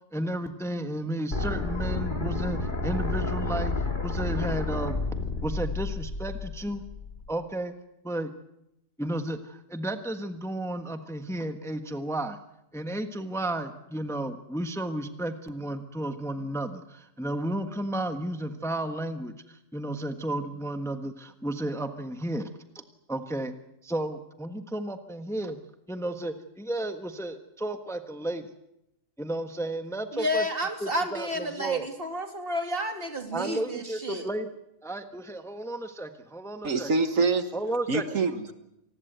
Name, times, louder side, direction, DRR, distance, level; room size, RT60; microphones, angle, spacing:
voice 1, 0.1-3.7 4.0-5.0 5.4-6.8 7.3-7.7 8.0-8.3 9.0-12.4 12.7-22.5 23.1-23.5 23.8-25.6 25.9-28.5 29.2-30.4 30.8-31.9 33.3-34.5 34.8-36.9 37.5-38.0, right 1 dB, ahead, 7 dB, 1.3 m, -33 dB
sound 1, 1.3-7.3, left 3 dB, 35° left, 3.0 m, -30 dB
voice 2, 30.1-34.3, equal, 40° right, 5 dB, 2.8 m, -31 dB
voice 3, 36.6-37.5 37.9-38.5, right 4 dB, 70° right, 9 dB, 1.8 m, -25 dB
28.0 x 19.5 x 8.0 m, 0.84 s
omnidirectional pair, 1.4 m